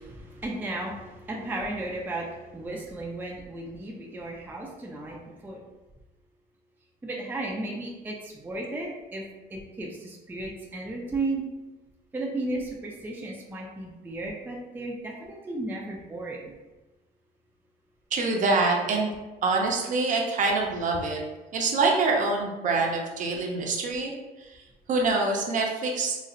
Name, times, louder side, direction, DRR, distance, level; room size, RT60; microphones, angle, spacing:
voice 1, 0.0-5.6 7.0-9.2 9.5-11.4 12.1-16.5, right 2 dB, 10° right, -2 dB, 0.4 m, -34 dB
voice 2, 18.1-19.1 19.4-21.2 21.5-24.1 24.4-24.6 24.9-26.2, right 3 dB, 50° right, 0 dB, 0.6 m, -25 dB
3.9 x 2.1 x 2.4 m, 1.1 s
cardioid pair, 110°, 17 cm